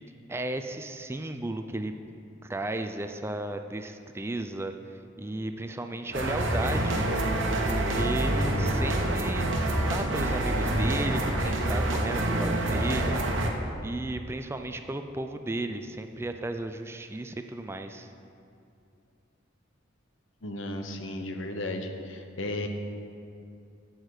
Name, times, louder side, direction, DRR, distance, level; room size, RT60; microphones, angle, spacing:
voice 1, 0.3-2.0 2.4-4.7 5.2-7.2 7.7-9.5 9.9-13.2 13.8-18.1, right 2 dB, 15° right, 7 dB, 0.4 m, -34 dB
sound 1, 6.1-13.5, right 1 dB, 75° right, 1.1 m, -27 dB
voice 2, 20.4-22.7, left 1 dB, 75° left, 5 dB, 1.0 m, -34 dB
16.0 x 6.5 x 4.9 m, 2.5 s
head